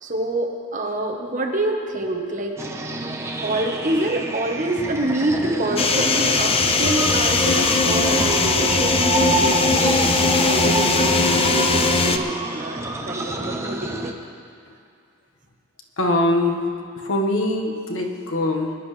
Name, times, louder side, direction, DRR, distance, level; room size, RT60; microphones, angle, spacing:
voice 1, 0.0-2.5 3.4-14.1, right 1 dB, 40° right, 1 dB, 1.3 m, -26 dB
sound 1, 2.6-14.1, right 2 dB, 15° right, 0.8 m, -28 dB
sound 2, 5.8-12.2, left 3 dB, 30° left, 0.6 m, -19 dB
voice 2, 16.0-16.6 17.0-18.7, left 1 dB, 90° left, 1 dB, 1.5 m, -22 dB
22.5 x 11.0 x 3.4 m, 2.3 s
head